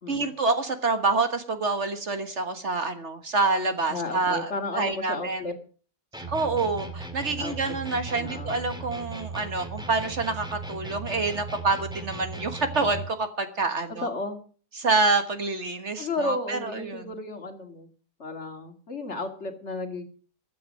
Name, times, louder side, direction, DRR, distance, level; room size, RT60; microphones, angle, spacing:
voice 1, 0.1-5.5 6.3-14.1 14.7-17.0, right 3 dB, 50° right, 8 dB, 1.6 m, -27 dB
voice 2, 3.9-5.5 7.4-7.5 8.1-8.5 13.9-14.4 16.0-17.9 18.2-20.0, left 2 dB, 45° left, 5 dB, 2.3 m, -33 dB
sound 1, 6.1-13.1, right 3 dB, 5° right, 1.9 m, -37 dB
15.0 x 9.8 x 6.3 m, 0.42 s
omnidirectional pair, 1.6 m